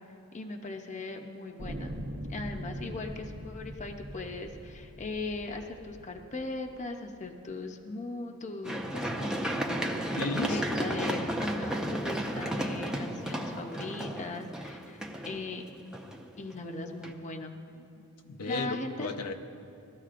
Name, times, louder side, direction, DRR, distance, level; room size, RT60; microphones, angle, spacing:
voice 1, 0.3-2.0 2.3-10.0 10.4-15.6 16.4-17.6 18.5-19.1, left 3 dB, 35° left, 4 dB, 0.7 m, -39 dB
sound 1, 1.6-6.8 7.6-7.7, equal, 55° right, 0.9 m, -42 dB
Run, 8.6-16.5 17.0-17.1, right 1 dB, 5° right, 0.6 m, -33 dB
voice 2, 10.1-10.6 18.0-19.3, left 3 dB, 80° left, 5 dB, 0.7 m, -34 dB
18.0 x 13.5 x 2.5 m, 2.6 s
head